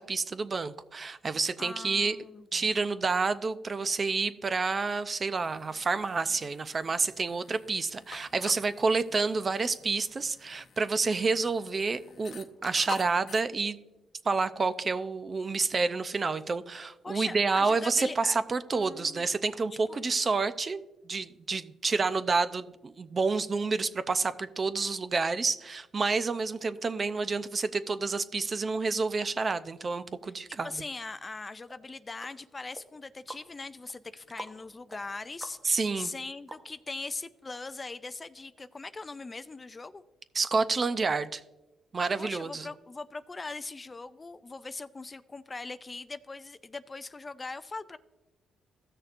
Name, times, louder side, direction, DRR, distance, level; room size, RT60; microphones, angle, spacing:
voice 1, 0.0-2.2 2.5-13.8 14.2-20.8 21.0-30.7 35.6-36.1 40.3-41.4 41.9-42.7, right 4 dB, 35° right, 13 dB, 0.5 m, -29 dB
voice 2, 1.6-2.7 17.0-18.4 18.7-19.3 19.9-20.0 30.5-40.0 42.2-48.0, left 3 dB, 25° left, 13 dB, 0.4 m, -41 dB
sound 1, 5.4-13.4, left 6 dB, 65° left, 0.8 m, -48 dB
sound 2, 31.7-37.1 37.5-37.6, right 1 dB, 15° right, 0.8 m, -49 dB
15.5 x 6.5 x 2.6 m, 1.0 s
cardioid pair, 90°, 0 cm